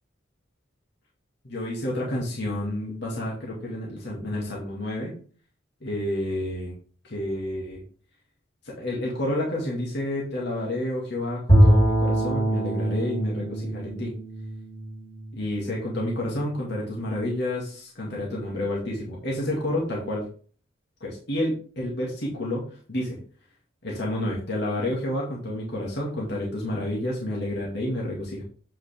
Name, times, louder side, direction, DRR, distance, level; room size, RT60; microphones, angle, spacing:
voice 1, 1.4-5.1 5.8-6.7 7.0-7.8 8.6-14.1 15.3-20.3 21.0-23.2 23.8-28.4, left 1 dB, 55° left, -4 dB, 2.3 m, -30 dB
Bowed string instrument, 11.5-15.7, equal, 30° left, 3.1 m, -22 dB
8.1 x 5.8 x 3.5 m, 0.42 s
head